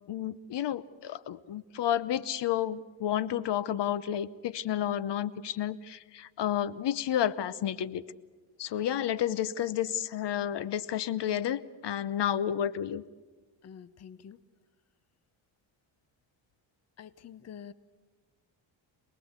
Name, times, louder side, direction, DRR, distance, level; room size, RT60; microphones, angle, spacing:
voice 1, 0.1-8.0 8.6-13.0, left 10 dB, 60° left, 18 dB, 0.9 m, -31 dB
voice 2, 13.6-14.4 17.0-17.7, left 8 dB, 35° left, 17 dB, 0.7 m, -47 dB
27.5 x 19.5 x 8.1 m, 1.4 s
cardioid pair, 110°, 47 cm